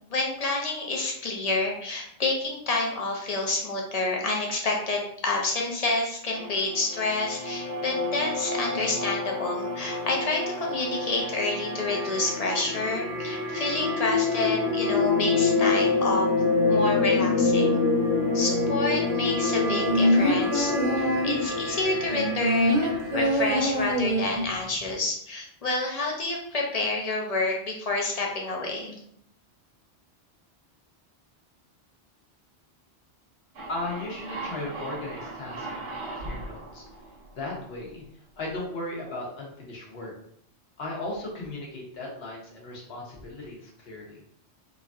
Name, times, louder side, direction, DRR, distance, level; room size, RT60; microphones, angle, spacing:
voice 1, 0.1-16.3 16.7-17.8 18.3-29.0, left 2 dB, 45° left, 0 dB, 0.5 m, -29 dB
sound 1, 6.3-23.2, left 3 dB, 25° left, 1.2 m, -27 dB
sound 2, 19.6-21.5 22.1-24.5 24.8-24.9, equal, 50° right, 0.6 m, -24 dB
sound 3, 33.5-38.0, right 2 dB, 75° right, 1.0 m, -38 dB
voice 2, 33.7-36.8 37.3-38.0 38.4-40.1 40.8-44.2, left 2 dB, 65° left, -2 dB, 1.1 m, -36 dB
3.1 x 2.6 x 2.3 m, 0.69 s
omnidirectional pair, 1.1 m